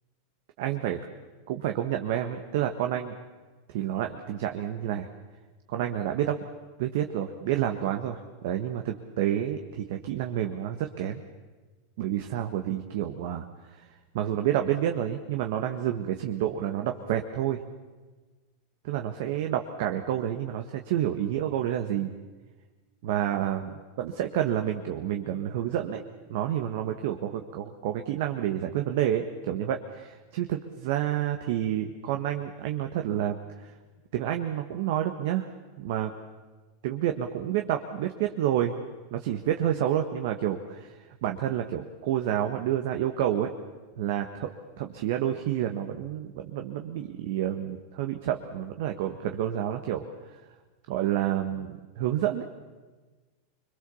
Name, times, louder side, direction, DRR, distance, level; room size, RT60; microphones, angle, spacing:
voice 1, 0.6-1.1 1.5-3.2 3.7-5.1 5.7-6.4 6.8-11.2 12.0-13.8 14.1-17.6 18.8-22.1 23.0-26.0 26.3-33.7 34.1-35.5 35.8-36.1 36.8-38.8 39.1-43.5 44.0-50.1 50.9-52.4, right 11 dB, 65° right, 5 dB, 1.5 m, -29 dB
25.5 x 22.0 x 7.1 m, 1.3 s
hypercardioid pair, 110°, 0 cm